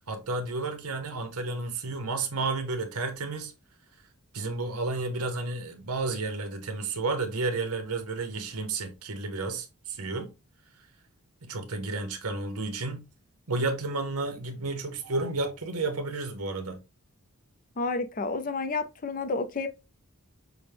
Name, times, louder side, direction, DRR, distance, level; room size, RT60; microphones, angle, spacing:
voice 1, 0.1-3.5 4.3-10.3 11.4-13.0 13.5-16.8, right 3 dB, 80° right, 0.9 m, -31 dB
voice 2, 17.8-19.7, left 3 dB, 35° left, 0.5 m, -30 dB
6.0 x 2.1 x 3.3 m
head